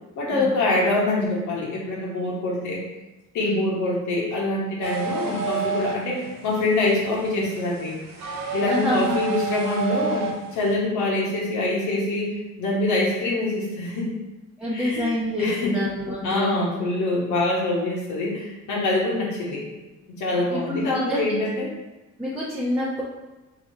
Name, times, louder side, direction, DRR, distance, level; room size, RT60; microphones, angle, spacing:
voice 1, 0.2-2.8 3.3-8.0 8.5-14.1 14.7-15.1 15.4-15.8 16.2-19.6 20.2-21.7, left 2 dB, 80° left, -4 dB, 1.2 m, -25 dB
sound 1, 4.8-10.7, right 3 dB, 65° right, 0.8 m, -30 dB
voice 2, 8.6-9.2 14.6-16.6 20.3-21.2 22.2-23.0, left 1 dB, ahead, -9 dB, 0.9 m, -27 dB
3.6 x 3.0 x 4.6 m, 1.1 s
cardioid pair, 90°, 30 cm